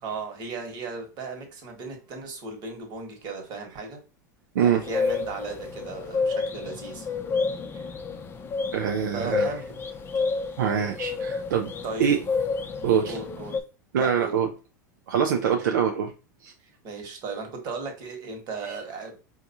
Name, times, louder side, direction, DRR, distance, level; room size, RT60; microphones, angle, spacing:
voice 1, 0.0-4.0 4.6-7.1 7.7-7.8 9.1-9.7 11.8-12.1 13.1-13.6 14.0-14.5 16.8-19.2, right 4 dB, 45° right, 1.3 m, -36 dB
voice 2, 4.5-4.9 8.7-9.5 10.6-11.7 12.0-12.2 12.8-13.2 13.9-14.5 15.1-16.1 16.4-16.5, right 7 dB, 80° right, 0.5 m, -24 dB
sound 1, 4.8-13.6, left 4 dB, 25° left, 0.5 m, -30 dB
4.6 x 2.4 x 2.7 m
hypercardioid pair, 100°, 10 cm